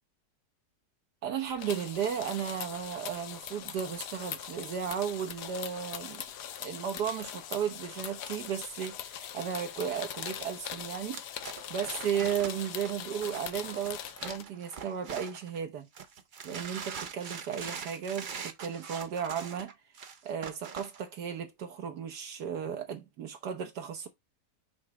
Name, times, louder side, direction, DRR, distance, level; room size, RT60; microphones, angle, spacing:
voice 1, 1.2-6.2 6.6-11.2 11.7-15.9 16.4-19.7 20.2-24.1, right 8 dB, 75° right, 1.5 m, -35 dB
sound 1, 1.5-14.4, left 10 dB, 80° left, 1.3 m, -41 dB
sound 2, 11.1-15.6 16.0-21.0, right 6 dB, 60° right, 0.5 m, -43 dB
6.4 x 3.1 x 4.7 m
omnidirectional pair, 1.8 m